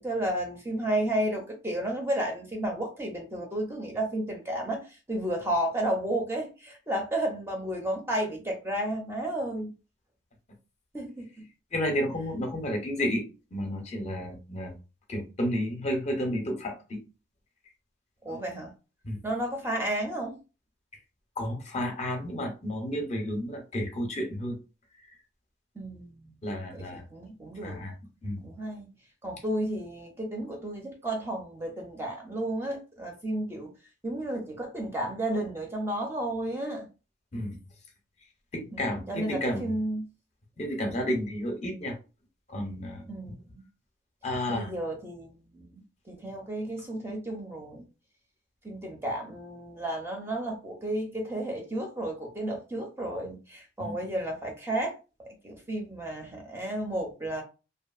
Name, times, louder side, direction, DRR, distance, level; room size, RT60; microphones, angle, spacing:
voice 1, 0.0-4.8 5.1-9.7 10.9-11.4 18.2-18.7 19.2-20.4 25.8-26.3 26.7-27.8 28.4-28.9 29.2-33.7 34.0-36.9 38.7-40.1 43.1-43.6 44.5-45.8 46.1-47.8 48.6-54.9 55.4-57.4, right 1 dB, 10° right, 0.5 m, -32 dB
voice 2, 11.7-13.2 13.5-14.7 15.1-17.0 18.3-18.4 19.0-19.2 21.4-24.6 26.4-27.0 27.6-27.9 28.2-28.4 37.3-37.6 38.5-39.7 40.6-41.9 42.5-43.3 44.2-44.7 53.8-53.9, left 1 dB, 35° left, 0.6 m, -31 dB
2.6 x 2.4 x 2.4 m
head